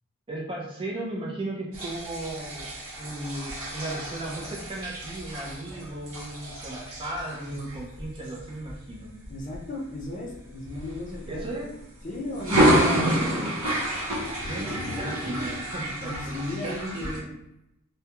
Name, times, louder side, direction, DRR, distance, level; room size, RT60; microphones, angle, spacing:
voice 1, 0.3-2.7 3.0-9.1 11.3-11.7 12.6-13.5 14.4-17.3, right 1 dB, 25° right, -3 dB, 0.4 m, -35 dB
sound 1, 1.7-9.6 10.1-10.3 10.7-11.8 12.3-17.2, equal, 70° right, 0.8 m, -29 dB
voice 2, 9.3-11.6 12.0-13.2 16.0-17.2, left 1 dB, 35° left, -2 dB, 0.5 m, -36 dB
2.3 x 2.1 x 2.8 m, 0.84 s
head